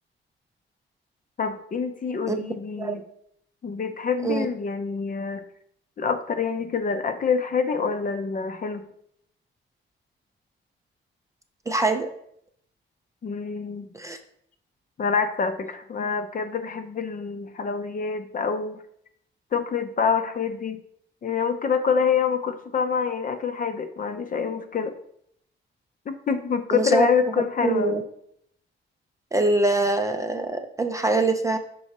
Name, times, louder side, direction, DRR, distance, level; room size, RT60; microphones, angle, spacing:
voice 1, 1.4-3.0 3.6-5.4 6.0-8.8 13.2-13.9 15.0-18.8 19.5-20.8 21.2-24.9 26.1-27.9, left 6 dB, 40° left, 8 dB, 0.6 m, -26 dB
voice 2, 11.7-12.1 13.9-14.2 26.7-27.1 27.4-28.0 29.3-31.6, right 2 dB, 15° right, 6 dB, 0.5 m, -24 dB
6.0 x 4.8 x 4.1 m, 0.69 s
wide cardioid pair, 150°, 20 cm